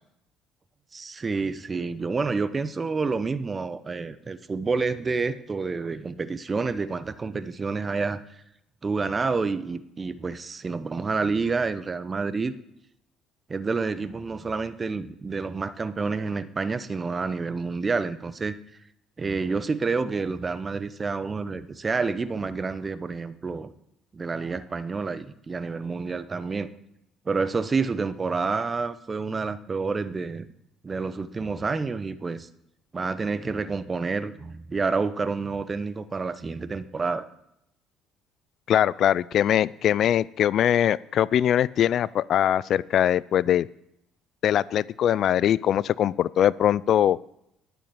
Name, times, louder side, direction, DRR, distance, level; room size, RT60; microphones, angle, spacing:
voice 1, 0.9-8.2 8.8-12.5 13.5-18.6 19.2-23.7 24.1-26.7 27.3-30.5 30.8-32.5 32.9-37.3, right 4 dB, 30° right, 14 dB, 0.9 m, -28 dB
voice 2, 38.7-43.7 44.4-47.2, left 10 dB, 60° left, 21 dB, 0.3 m, -22 dB
11.0 x 8.9 x 6.9 m, 0.79 s
supercardioid pair, 75°, 0 cm